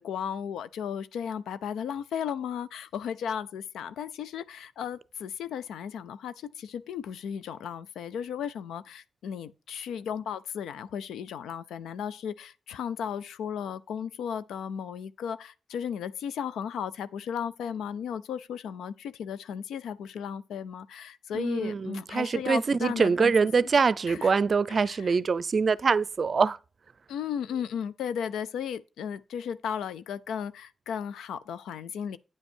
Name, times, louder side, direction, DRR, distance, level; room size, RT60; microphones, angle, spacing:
voice 1, 0.0-23.3 23.6-23.7 24.1-24.3 24.7-25.2 27.1-32.2, left 8 dB, 90° left, 0.5 m, -35 dB
voice 2, 21.3-26.6, right 5 dB, 55° right, 0.5 m, -24 dB
9.5 x 5.3 x 4.4 m
supercardioid pair, 50°, 0 cm